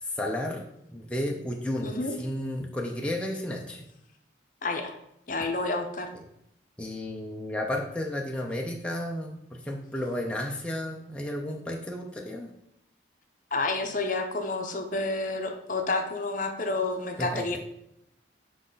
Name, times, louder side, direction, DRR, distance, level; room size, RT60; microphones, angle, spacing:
voice 1, 0.0-3.8 6.8-12.5 17.2-17.4, left 1 dB, 5° left, -1 dB, 0.6 m, -33 dB
voice 2, 1.8-2.2 4.6-4.9 5.3-6.1 13.5-17.6, left 3 dB, 45° left, 5 dB, 0.7 m, -29 dB
6.2 x 5.0 x 3.9 m, 0.78 s
head